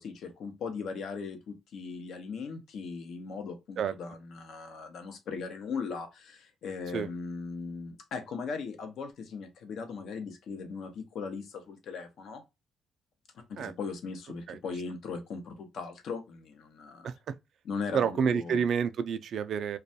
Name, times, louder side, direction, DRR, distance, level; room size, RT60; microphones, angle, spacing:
voice 1, 0.0-12.4 13.3-17.1 17.6-18.6, left 5 dB, 70° left, 0.7 m, -39 dB
voice 2, 17.9-19.8, right 7 dB, 65° right, 0.3 m, -29 dB
2.3 x 2.2 x 2.6 m
cardioid pair, 90°, 0 cm